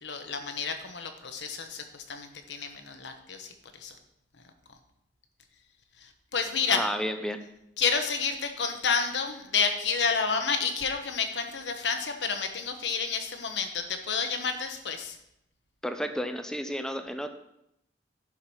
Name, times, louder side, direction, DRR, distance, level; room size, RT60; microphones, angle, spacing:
voice 1, 0.0-4.0 6.0-6.8 7.8-15.2, left 5 dB, 80° left, 6 dB, 1.2 m, -30 dB
voice 2, 6.7-7.4 15.8-17.3, equal, 5° left, 7 dB, 0.6 m, -31 dB
10.5 x 5.0 x 5.6 m, 0.81 s
head